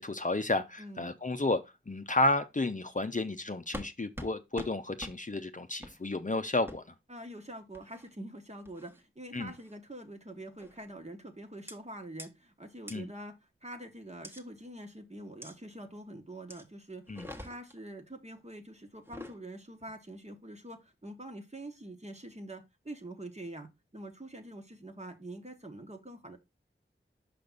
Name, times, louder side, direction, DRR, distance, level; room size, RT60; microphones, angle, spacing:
voice 1, 0.0-6.8 9.3-9.5 12.9-13.1 17.1-17.3, left 2 dB, 40° left, 0.6 m, -32 dB
voice 2, 0.8-1.2 7.1-13.4 13.6-26.4, right 1 dB, 30° right, 1.4 m, -45 dB
sound 1, 3.7-3.9 4.2-4.3 4.6-4.7 5.0-5.1 5.8-6.0 6.7-6.8 7.7-8.1 8.6-9.0 9.5-9.8 10.6-10.9 11.7-11.8 12.2-12.3 12.9-13.0 14.2-14.4 15.4-15.5 16.5-16.6 17.1-17.8 18.9-19.4, left 1 dB, 10° right, 1.2 m, -44 dB
5.9 x 5.2 x 3.9 m
wide cardioid pair, 45°, 21 cm